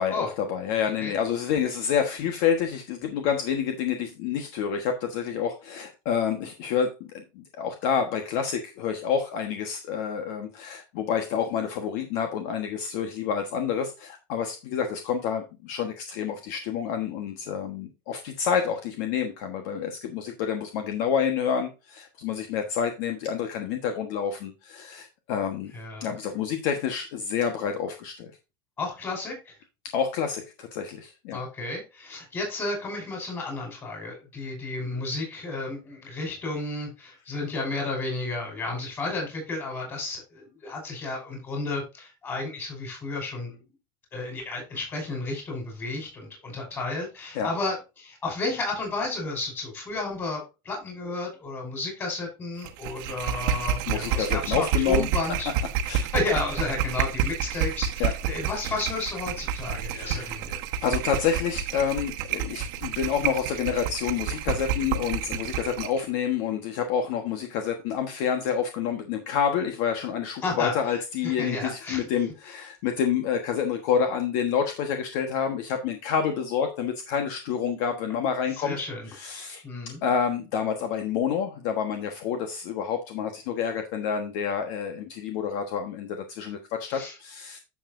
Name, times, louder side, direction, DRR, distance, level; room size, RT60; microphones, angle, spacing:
voice 1, 0.0-25.7 26.0-28.3 29.9-31.4 47.3-47.5 53.9-55.1 55.8-56.0 58.0-58.1 59.9-60.3 60.8-78.8 79.1-79.6 80.0-87.6, left 7 dB, 60° left, 5 dB, 1.3 m, -28 dB
voice 2, 25.7-26.1 28.8-29.6 31.3-43.6 44.1-55.5 56.1-60.6 70.4-70.7 71.2-72.1 78.5-79.1 79.6-80.0 86.9-87.2, left 3 dB, 20° left, 1 dB, 5.5 m, -32 dB
sound 1, 52.6-66.0, right 7 dB, 60° right, 1.2 m, -29 dB
9.9 x 7.4 x 2.6 m, 0.27 s
supercardioid pair, 155°, 12 cm